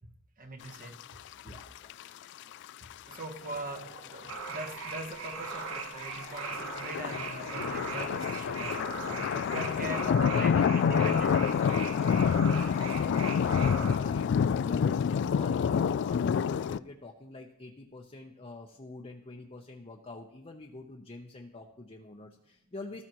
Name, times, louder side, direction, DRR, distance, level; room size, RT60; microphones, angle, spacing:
voice 1, 0.4-1.0 3.1-11.5, right 1 dB, 40° right, 1.2 m, -41 dB
voice 2, 1.4-1.9 9.0-10.2 10.5-14.3 14.6-23.0, left 2 dB, 30° left, 0.8 m, -46 dB
sound 1, 1.5-1.6 1.9-2.0 2.6-3.2 4.0-4.1 4.2-4.3 4.7-5.8 6.2-16.8, left 7 dB, 60° left, 0.3 m, -27 dB
sound 2, 3.4-12.8, left 2 dB, 90° left, 2.5 m, -51 dB
sound 3, 4.3-14.0, right 4 dB, 80° right, 1.2 m, -39 dB
14.0 x 13.5 x 3.0 m
head